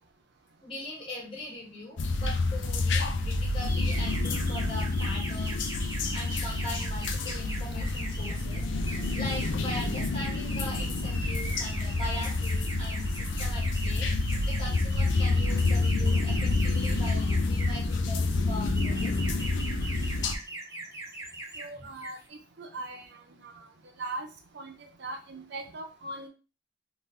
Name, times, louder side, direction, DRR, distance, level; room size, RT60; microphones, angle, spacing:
voice 1, 0.6-5.7 6.1-8.7 9.1-14.1 14.5-19.6 21.7-21.9, left 1 dB, 30° left, -4 dB, 1.8 m, -41 dB
sound 1, 2.0-20.3, left 2 dB, 70° left, 0.5 m, -28 dB
sound 2, 3.6-17.9 18.5-21.7 21.9-22.3, right 2 dB, 15° right, 1.0 m, -41 dB
voice 2, 21.6-22.2 22.6-23.1 23.3-23.6 24.0-24.3 24.5-24.7 25.0-26.3, right 2 dB, 60° right, 5 dB, 0.6 m, -39 dB
3.7 x 3.2 x 2.7 m, 0.33 s
head